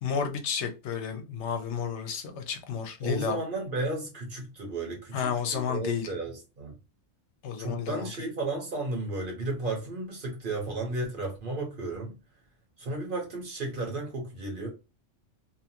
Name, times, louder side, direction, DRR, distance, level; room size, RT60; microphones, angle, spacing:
voice 1, 0.0-3.4 5.1-6.1 7.4-8.1, left 7 dB, 70° left, 0.9 m, -31 dB
voice 2, 3.0-6.7 7.6-12.1 12.8-14.7, right 2 dB, 45° right, 1.0 m, -33 dB
2.8 x 2.3 x 2.8 m
omnidirectional pair, 1.3 m